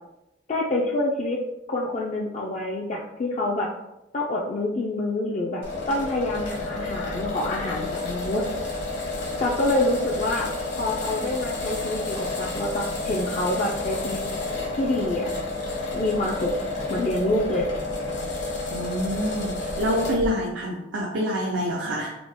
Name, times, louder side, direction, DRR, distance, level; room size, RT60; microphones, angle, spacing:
voice 1, 0.5-1.4 1.7-3.7 4.1-8.4 9.4-10.5 10.8-14.2 14.7-15.3 15.9-16.5 16.9-17.7, left 2 dB, 40° left, -3 dB, 0.3 m, -26 dB
sound 1, 5.6-20.3, left 3 dB, 70° left, 1.2 m, -30 dB
voice 2, 18.7-22.2, equal, 85° right, -3 dB, 0.5 m, -27 dB
3.6 x 2.1 x 3.5 m, 0.91 s
head